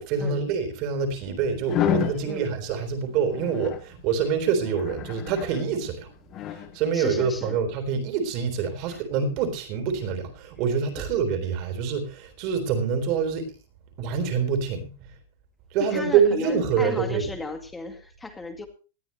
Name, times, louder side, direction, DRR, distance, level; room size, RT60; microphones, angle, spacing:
voice 1, 0.0-6.1 6.5-13.5 14.0-14.9 15.7-17.2, right 6 dB, 35° right, 8 dB, 3.8 m, -26 dB
sound 1, 1.7-2.2 3.3-3.8 4.7-5.6 6.3-6.7, left 11 dB, 25° left, 1.4 m, -28 dB
voice 2, 2.2-2.5 6.9-7.6 8.9-9.0 15.9-18.7, left 3 dB, 5° left, 6 dB, 2.1 m, -35 dB
19.5 x 13.0 x 3.2 m, 0.34 s
supercardioid pair, 165°, 0 cm